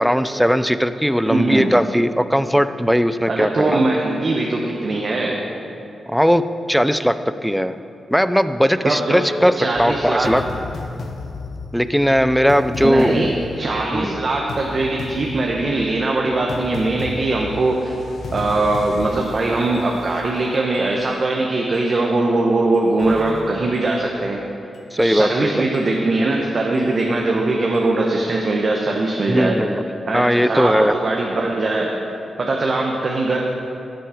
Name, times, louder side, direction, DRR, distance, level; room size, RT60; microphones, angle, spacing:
voice 1, 0.0-3.8 6.1-6.4 6.7-7.1 7.4-7.8 8.1-9.5 9.8-10.4 11.7-13.3 13.9-14.2 24.9-25.6 29.3-29.8 30.1-31.0, equal, ahead, 12 dB, 0.4 m, -18 dB
voice 2, 1.2-1.7 3.3-5.4 8.8-9.2 9.6-10.3 12.8-17.9 18.3-24.4 25.0-29.6 30.1-31.9 32.4-33.4, right 2 dB, 50° right, 0 dB, 0.9 m, -21 dB
sound 1, 9.7-21.0 21.7-21.8 22.7-24.0 24.7-25.0 25.7-25.8 26.7-27.0 27.7-27.8, left 4 dB, 70° left, 0.6 m, -34 dB
12.0 x 6.1 x 4.9 m, 2.8 s
cardioid pair, 55°, 0 cm